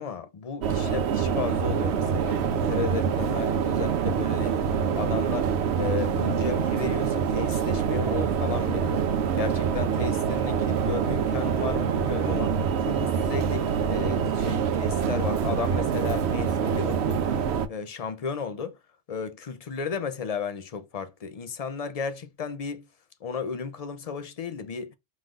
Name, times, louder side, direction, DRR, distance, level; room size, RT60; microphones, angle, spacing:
voice 1, 0.0-4.6 4.9-5.5 5.7-12.5 12.8-18.8 19.1-22.9 23.2-25.0, left 6 dB, 45° left, 0.6 m, -34 dB
sound 1, 0.6-17.7, right 7 dB, 70° right, 0.9 m, -25 dB
5.6 x 3.2 x 2.5 m
omnidirectional pair, 1.2 m